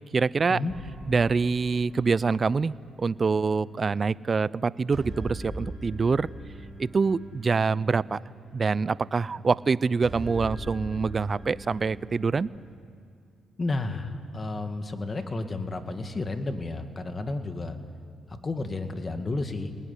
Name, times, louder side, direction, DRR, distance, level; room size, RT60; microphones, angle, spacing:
voice 1, 0.1-0.6 1.1-6.3 6.8-8.2 8.5-12.5, right 4 dB, 35° right, 20 dB, 0.6 m, -25 dB
sound 1, 0.7-12.8, right 1 dB, 10° right, 5.4 m, -42 dB
voice 2, 13.6-17.8 18.3-19.7, left 2 dB, 30° left, 7 dB, 2.1 m, -32 dB
30.0 x 20.0 x 9.9 m, 2.4 s
cardioid pair, 90°, 0 cm